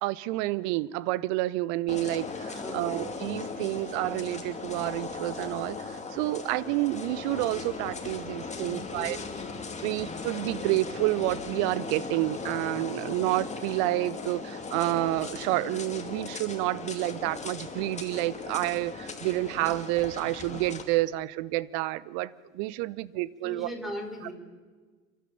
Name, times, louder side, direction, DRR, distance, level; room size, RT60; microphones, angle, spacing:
voice 1, 0.0-9.2 9.8-23.7, right 18 dB, 50° right, 0.8 m, -29 dB
sound 1, 1.9-20.8, left 4 dB, 15° left, 2.5 m, -38 dB
voice 2, 2.5-2.9 8.5-9.6 23.4-24.3, equal, ahead, 4.9 m, -39 dB
30.0 x 12.5 x 7.2 m
figure-of-eight pair, 70°, 40 cm